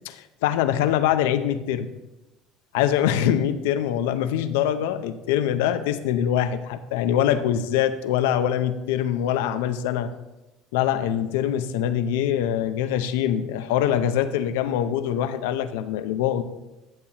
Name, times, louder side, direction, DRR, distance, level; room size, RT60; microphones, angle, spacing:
voice 1, 0.0-1.9 2.7-10.1 10.7-16.4, left 10 dB, 85° left, 10 dB, 0.6 m, -24 dB
12.0 x 7.1 x 2.9 m, 0.99 s
supercardioid pair, 85°, 0 cm